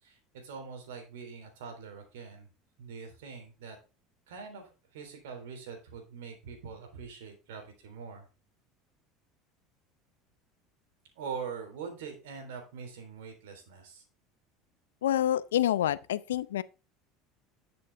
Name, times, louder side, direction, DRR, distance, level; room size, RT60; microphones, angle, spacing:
voice 1, 0.0-2.5 2.8-3.8 4.3-8.3 11.2-14.0, right 6 dB, 75° right, 3.4 m, -43 dB
voice 2, 15.0-16.6, left 11 dB, 85° left, 0.5 m, -27 dB
11.0 x 6.9 x 3.4 m
hypercardioid pair, 80°, 0 cm